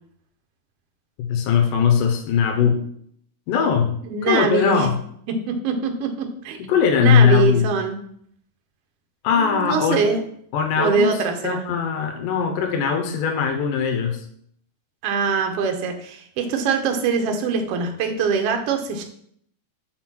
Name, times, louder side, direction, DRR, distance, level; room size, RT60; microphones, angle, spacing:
voice 1, 1.2-2.8 3.5-4.0 4.3-5.0 6.6-7.7 9.2-10.0 10.5-14.3, left 7 dB, 80° left, 4 dB, 2.4 m, -20 dB
voice 2, 4.0-4.9 5.3-6.6 7.0-8.0 9.3-10.2 10.8-11.6 15.0-19.0, right 5 dB, 70° right, 4 dB, 1.5 m, -23 dB
6.0 x 4.1 x 6.1 m, 0.65 s
omnidirectional pair, 3.8 m